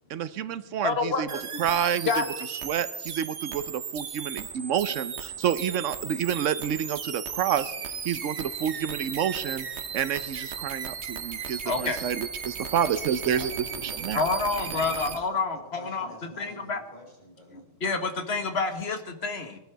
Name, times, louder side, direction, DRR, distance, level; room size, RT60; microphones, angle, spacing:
voice 1, 0.1-1.3 1.6-2.2 2.6-7.7 8.0-9.7 9.9-13.5 14.0-14.2, right 9 dB, 85° right, 14 dB, 1.1 m, -29 dB
voice 2, 0.8-1.6 2.0-2.2 11.6-12.0 14.1-16.8 17.5-19.6, left 4 dB, 60° left, 8 dB, 1.6 m, -28 dB
sound 1, 1.3-15.2, right 7 dB, 65° right, 1.3 m, -36 dB
voice 3, 12.5-17.6, right 1 dB, 35° left, -2 dB, 5.6 m, -47 dB
21.0 x 11.5 x 4.6 m, 0.99 s
omnidirectional pair, 1.2 m